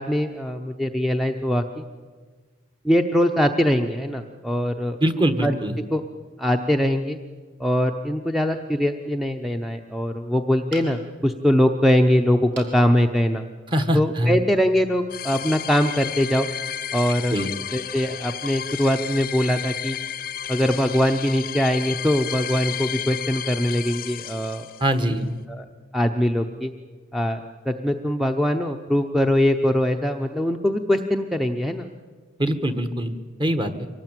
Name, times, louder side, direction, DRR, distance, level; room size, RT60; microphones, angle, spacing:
voice 1, 0.0-1.8 2.8-5.0 5.4-5.5 5.9-6.0 6.4-7.2 7.6-13.4 13.9-16.5 16.9-17.4 17.7-20.0 20.5-24.7 25.5-25.6 25.9-26.7 27.1-31.9, equal, ahead, 5 dB, 0.7 m, -22 dB
voice 2, 5.0-5.8 13.7-14.3 17.3-17.5 24.8-25.3 32.4-33.9, right 1 dB, 25° right, 8 dB, 1.4 m, -23 dB
sound 1, 10.7-11.3 12.5-12.8 13.4-13.5 13.8-13.9, right 4 dB, 65° right, 4.6 m, -41 dB
sound 2, 15.1-25.0, left 9 dB, 50° left, 0.8 m, -32 dB
24.0 x 18.5 x 9.1 m, 1.5 s
head